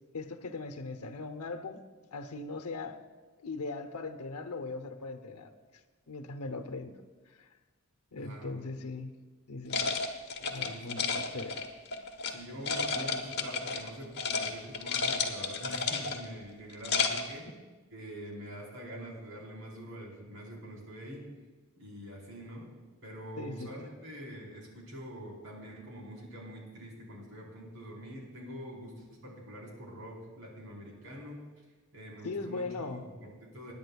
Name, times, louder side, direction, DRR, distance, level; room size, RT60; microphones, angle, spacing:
voice 1, 0.1-1.8 2.1-3.0 3.4-5.5 6.1-7.0 7.3-7.5 8.1-9.2 9.5-10.0 10.4-11.6 23.4-23.7 32.2-33.0, left 3 dB, 90° left, 8 dB, 0.9 m, -39 dB
voice 2, 8.2-8.8 10.5-11.3 12.0-17.4 17.9-21.2 21.8-22.7 23.0-31.4 31.9-33.7, equal, 60° right, -2 dB, 4.1 m, -45 dB
sound 1, 9.7-12.3 12.7-13.9 14.2-14.5 14.7-16.3 16.7-17.3, left 5 dB, 50° left, 1.1 m, -32 dB
25.5 x 10.5 x 2.3 m, 1.3 s
head